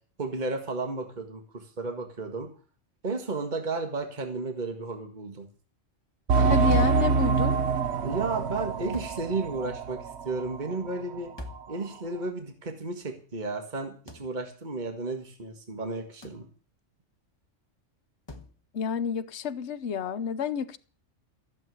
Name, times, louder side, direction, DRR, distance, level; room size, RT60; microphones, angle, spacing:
voice 1, 0.2-2.5 3.0-5.5 8.0-11.3 11.7-16.5, right 3 dB, 35° right, 1.9 m, -33 dB
sound 1, 6.3-10.6 10.9-11.0 11.6-11.7, right 4 dB, 60° right, 1.2 m, -25 dB
voice 2, 6.5-7.6 18.7-20.8, left 7 dB, 65° left, 1.1 m, -30 dB
sound 2, 6.7-7.1 8.9-9.2 11.4-11.7 14.1-14.3 16.2-16.5 18.3-18.5, left 2 dB, 20° left, 1.4 m, -41 dB
14.5 x 7.7 x 9.4 m
omnidirectional pair, 1.3 m